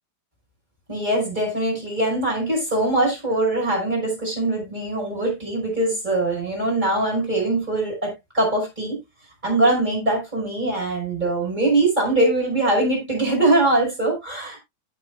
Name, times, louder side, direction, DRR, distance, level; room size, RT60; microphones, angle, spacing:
voice 1, 0.9-9.0 9.4-14.6, right 2 dB, 15° right, 5.5 m, -22 dB
16.0 x 6.2 x 2.2 m
omnidirectional pair, 3.3 m